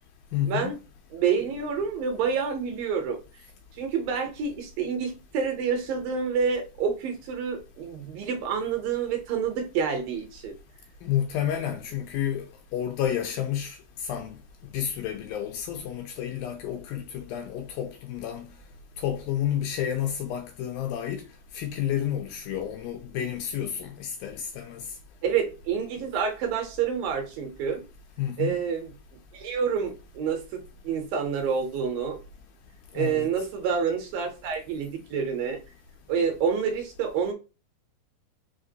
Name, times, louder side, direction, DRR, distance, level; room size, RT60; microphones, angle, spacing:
voice 1, 0.3-0.7 11.0-12.5 12.7-13.8 14.0-14.4 14.7-18.5 19.0-21.2 21.5-24.8 28.2-28.5 32.9-33.3, left 10 dB, 80° left, 2.1 m, -30 dB
voice 2, 1.1-3.2 3.8-10.5 25.2-27.8 28.4-28.9 29.3-32.2 32.9-35.6 36.1-37.3, right 6 dB, 75° right, 2.3 m, -28 dB
5.7 x 2.9 x 2.7 m
omnidirectional pair, 4.5 m